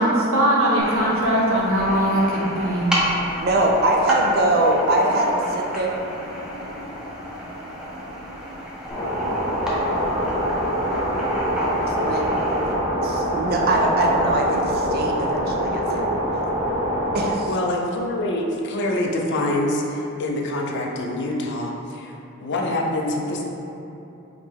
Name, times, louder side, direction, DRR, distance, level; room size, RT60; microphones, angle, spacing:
voice 1, 0.0-3.0, right 1 dB, 90° right, -4 dB, 0.7 m, -20 dB
sound 1, 0.8-12.7, equal, 5° right, 0.6 m, -31 dB
voice 2, 3.4-5.9 11.8-12.2 13.0-16.0 17.1-17.5, right 1 dB, 50° right, 0 dB, 0.4 m, -22 dB
sound 2, 8.9-17.3, equal, 30° left, 1.1 m, -24 dB
voice 3, 17.5-23.4, left 1 dB, 60° left, 0 dB, 0.5 m, -25 dB
4.8 x 2.1 x 3.4 m, 2.9 s
head